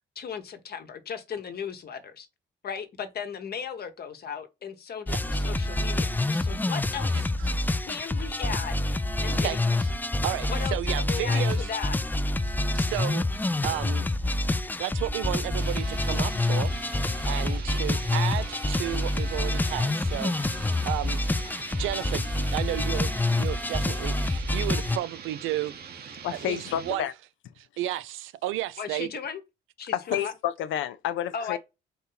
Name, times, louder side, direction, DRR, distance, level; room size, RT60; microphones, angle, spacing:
voice 1, 0.1-2.3 2.6-7.3 7.8-10.1 10.5-12.0 19.3-19.4 28.8-29.4 29.8-30.3 31.3-31.6, left 7 dB, 50° left, 1.0 m, -37 dB
sound 1, 5.1-25.0, left 2 dB, 10° left, 0.3 m, -27 dB
voice 2, 7.1-7.5 9.4-9.6 10.2-11.7 12.4-14.2 14.8-16.7 17.3-20.3 20.9-21.2 21.8-23.1 23.4-27.0 27.6-29.1, right 14 dB, 85° right, 0.5 m, -33 dB
sound 2, 15.6-27.0, right 6 dB, 50° right, 0.9 m, -43 dB
voice 3, 26.2-27.1 29.9-31.6, left 11 dB, 80° left, 0.5 m, -29 dB
4.4 x 2.8 x 3.9 m
cardioid pair, 90°, 20 cm